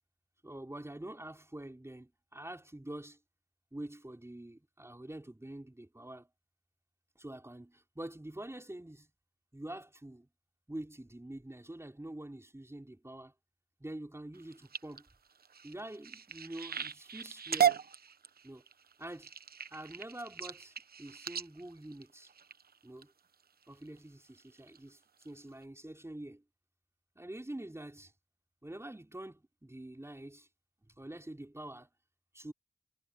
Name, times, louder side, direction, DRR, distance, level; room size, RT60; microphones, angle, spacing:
voice 1, 0.4-3.2 3.7-6.3 7.2-9.1 9.5-10.3 10.7-13.3 13.8-15.1 15.6-17.8 18.4-18.6 19.0-19.3 19.7-22.3 22.8-23.1 23.7-26.4 27.2-28.1 28.6-30.5 30.9-31.9 32.3-32.5, right 1 dB, 15° right, 5.3 m, -46 dB
sound 1, 14.3-23.0 23.6-24.0 24.4-24.8 25.2-25.3 25.6-25.7, right 8 dB, 70° right, 1.0 m, -36 dB
cardioid pair, 45°, 16 cm